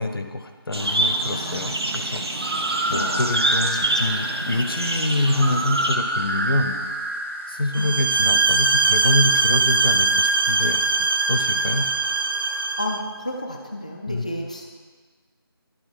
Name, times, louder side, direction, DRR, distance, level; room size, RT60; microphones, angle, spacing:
voice 1, 0.0-2.2 2.9-6.8 7.5-10.8 11.3-11.9 14.1-14.3, left 2 dB, 65° left, 6 dB, 0.8 m, -26 dB
sound 1, 0.7-6.0, right 2 dB, 85° right, 0.9 m, -26 dB
voice 2, 1.3-1.8 2.9-4.1 4.5-4.7 7.8-8.0 12.8-14.6, left 1 dB, 15° left, 1 dB, 0.3 m, -33 dB
sound 2, 2.3-8.1, right 2 dB, 30° right, 0.8 m, -28 dB
sound 3, 7.7-13.0, right 3 dB, 60° right, 0.5 m, -21 dB
11.5 x 4.0 x 4.4 m, 1.4 s
figure-of-eight pair, 165°, 13 cm